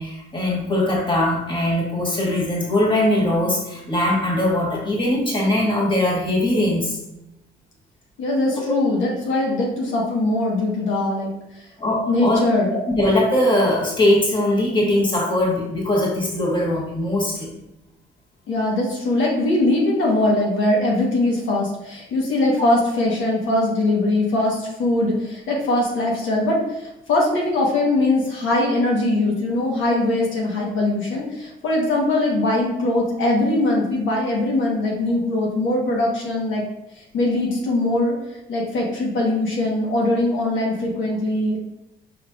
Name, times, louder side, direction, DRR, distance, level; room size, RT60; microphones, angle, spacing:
voice 1, 0.0-7.0 8.5-8.6 11.8-12.4 12.9-17.5, left 1 dB, 25° left, -3 dB, 1.4 m, -21 dB
voice 2, 8.2-11.3 12.1-12.8 18.5-36.6 37.0-38.1 38.5-41.6, left 2 dB, 80° left, -2 dB, 1.2 m, -21 dB
5.4 x 3.1 x 2.4 m, 0.88 s
cardioid pair, 90°, 20 cm